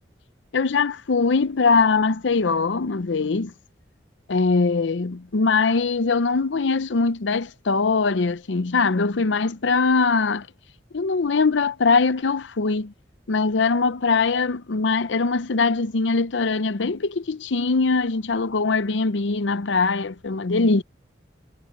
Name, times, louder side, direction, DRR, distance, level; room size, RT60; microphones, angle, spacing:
voice 1, 0.5-3.5 4.3-10.5 10.9-12.9 13.3-20.8, left 4 dB, 80° left, 0.7 m, -22 dB
head